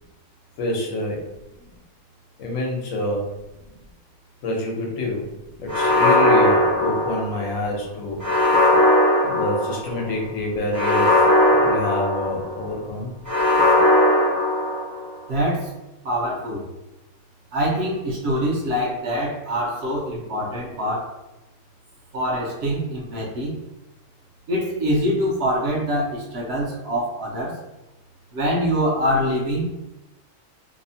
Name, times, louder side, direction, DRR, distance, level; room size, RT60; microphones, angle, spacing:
voice 1, 0.6-1.2 2.4-3.3 4.4-5.3 5.6-8.2 9.2-11.2 11.5-13.1, left 1 dB, 85° left, 0 dB, 1.1 m, -27 dB
sound 1, 5.7-7.6 8.2-10.0 10.7-12.6 13.3-15.1, left 1 dB, 20° right, 0.6 m, -18 dB
voice 2, 15.3-15.7 16.0-16.6 17.5-21.1 22.1-23.5 24.5-27.6 28.3-29.6, equal, 60° right, -3 dB, 0.8 m, -24 dB
2.8 x 2.0 x 2.7 m, 0.99 s
omnidirectional pair, 1.4 m